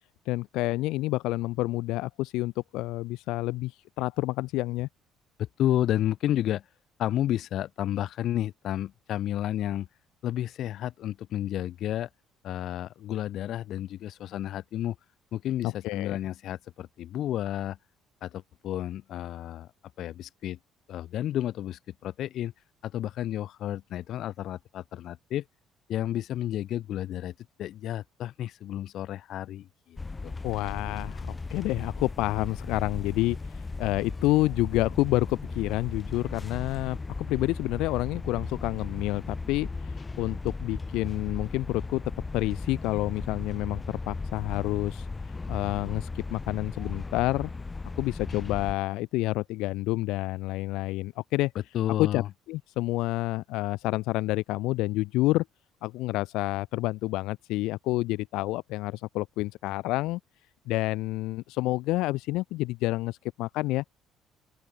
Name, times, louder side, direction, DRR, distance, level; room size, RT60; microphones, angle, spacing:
voice 1, 0.3-4.9 15.6-16.2 30.4-37.0 37.3-42.0 42.3-45.1 45.5-47.5 48.0-51.5 52.0-52.2 52.5-55.4 55.8-60.2 60.7-63.8, left 19 dB, 85° left, 0.3 m, -29 dB
voice 2, 5.4-6.6 7.0-9.9 10.2-12.1 12.4-15.0 15.3-17.8 18.2-19.7 20.0-20.6 20.9-22.5 22.8-25.4 25.9-27.3 27.6-30.0 30.2-30.3 51.7-52.3, left 12 dB, 65° left, 0.8 m, -31 dB
sound 1, 30.0-48.7, left 3 dB, 20° left, 0.6 m, -36 dB
open air
cardioid pair, 125°, 0 cm